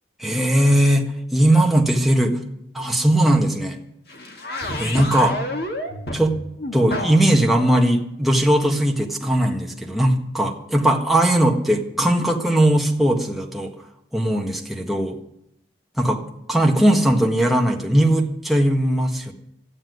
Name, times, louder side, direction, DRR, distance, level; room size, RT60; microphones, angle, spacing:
voice 1, 0.2-2.4 2.7-3.8 4.8-5.3 6.1-6.3 6.7-13.7 14.1-15.2 16.0-16.2 16.5-19.3, right 1 dB, ahead, 0 dB, 1.5 m, -19 dB
sound 1, 4.1-7.3, left 1 dB, 55° left, 2.0 m, -29 dB
13.0 x 9.9 x 9.4 m, 0.78 s
head